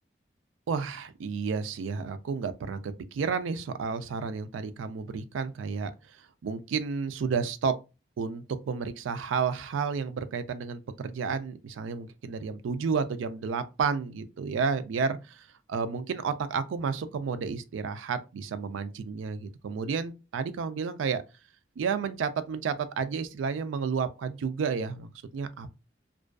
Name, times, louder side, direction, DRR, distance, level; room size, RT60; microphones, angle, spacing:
voice 1, 0.7-6.2 6.4-7.8 8.2-21.2 21.8-25.8, right 5 dB, 90° right, 0.3 m, -31 dB
2.4 x 2.2 x 2.3 m
head